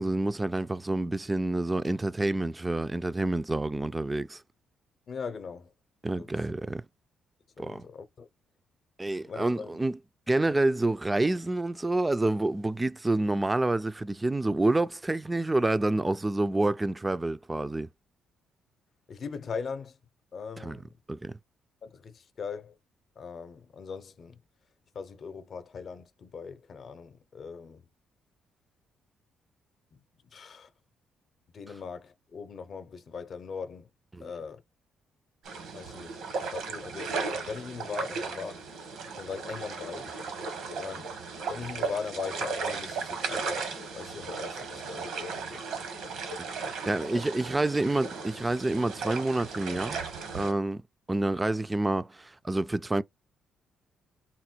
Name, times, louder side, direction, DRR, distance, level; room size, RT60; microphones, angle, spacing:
voice 1, 0.0-4.4 6.0-6.8 7.6-7.8 9.0-10.0 10.3-17.9 20.6-20.8 21.1-21.4 34.1-34.3 46.3-46.5 46.9-50.0 50.3-50.8 51.1-53.0, right 2 dB, 15° right, 0.4 m, -28 dB
voice 2, 5.1-5.7 6.2-6.3 7.6-8.3 9.2-9.8 19.1-20.0 20.3-21.0 21.8-22.8 23.2-24.4 24.9-27.8 29.9-30.0 30.3-30.7 31.5-33.9 34.2-34.6 35.7-38.6 39.2-40.2 40.7-41.2 41.5-45.6 46.6-46.8 47.1-47.2, left 5 dB, 50° left, 0.7 m, -40 dB
sound 1, 35.4-50.5, right 4 dB, 80° right, 1.3 m, -36 dB
4.2 x 2.1 x 4.4 m
cardioid pair, 90°, 0 cm